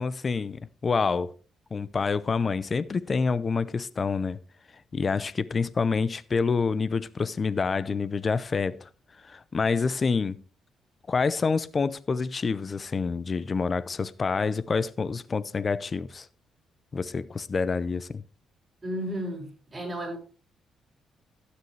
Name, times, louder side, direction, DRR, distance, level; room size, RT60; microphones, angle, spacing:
voice 1, 0.0-1.3 1.7-4.4 4.9-8.9 9.2-10.4 11.1-16.3 16.9-18.2, left 4 dB, 35° left, 0.6 m, -27 dB
voice 2, 18.8-20.2, equal, 20° right, 6.9 m, -33 dB
12.5 x 9.7 x 3.3 m
cardioid pair, 90°, 0 cm